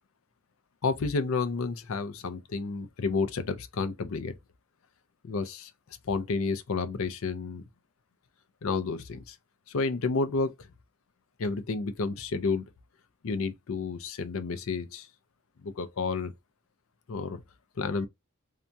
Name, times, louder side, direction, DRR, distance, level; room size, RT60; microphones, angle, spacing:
voice 1, 0.8-4.4 5.2-5.7 6.0-7.6 8.6-9.4 9.7-10.7 11.4-12.7 13.2-15.1 15.6-16.3 17.1-17.4 17.8-18.1, left 4 dB, 75° left, 0.5 m, -30 dB
2.7 x 2.2 x 2.6 m
head